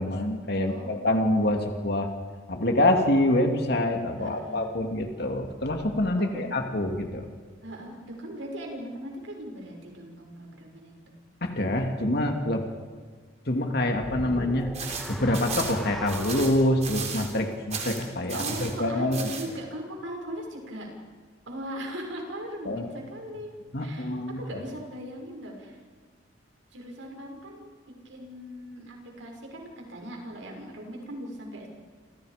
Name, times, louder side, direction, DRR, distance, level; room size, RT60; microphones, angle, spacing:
voice 1, 0.0-2.1 2.5-7.2 11.4-12.6 13.5-14.7 15.1-19.2 22.6-22.9 23.7-24.6, left 1 dB, 55° left, 3 dB, 2.6 m, -26 dB
voice 2, 0.6-1.5 4.2-4.8 6.2-6.5 7.6-11.1 18.3-20.9 21.5-23.5 23.8-25.8 26.7-31.7, equal, 85° right, 1 dB, 6.4 m, -39 dB
sound 1, 13.9-18.3, equal, ahead, 2.1 m, -40 dB
sound 2, 14.7-17.4 17.7-18.7 19.1-19.5, right 6 dB, 35° right, 3.7 m, -35 dB
29.5 x 28.0 x 5.2 m, 1.5 s
head